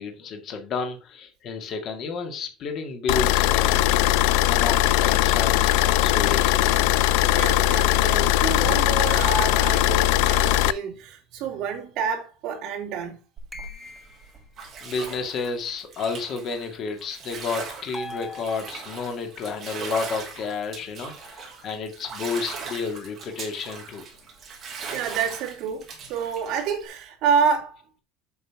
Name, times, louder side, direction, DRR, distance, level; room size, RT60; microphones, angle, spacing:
voice 1, 0.0-3.9 4.4-6.7 14.8-24.0, left 4 dB, 35° left, 2.0 m, -31 dB
sound 1, 3.1-10.7, left 13 dB, 85° left, 0.5 m, -20 dB
voice 2, 7.2-13.2 24.9-27.8, right 6 dB, 45° right, 3.1 m, -28 dB
Bathtub (filling or washing), 13.4-26.9, right 5 dB, 25° right, 2.8 m, -39 dB
sound 2, 13.5-14.4 17.9-19.2, left 1 dB, 5° left, 1.0 m, -40 dB
7.7 x 5.5 x 5.8 m
cardioid pair, 180°, 0 cm